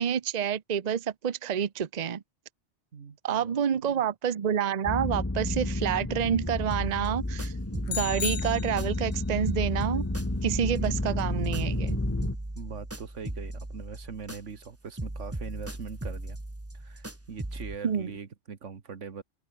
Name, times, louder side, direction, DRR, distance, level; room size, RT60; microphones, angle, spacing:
voice 1, 0.0-2.2 3.2-7.5 7.9-10.1 10.4-12.0 17.8-18.1, right 8 dB, 40° right, 0.8 m, -28 dB
voice 2, 2.9-3.6 3.8-4.0 11.7-16.4 16.7-19.2, right 6 dB, 90° right, 1.9 m, -42 dB
sound 1, 4.8-12.3, left 2 dB, 15° left, 1.3 m, -31 dB
sound 2, 6.7-9.2 9.5-14.7 15.0-17.8, right 1 dB, 10° right, 1.5 m, -38 dB
sound 3, 7.9-9.2, left 9 dB, 55° left, 0.8 m, -35 dB
open air
omnidirectional pair, 1.2 m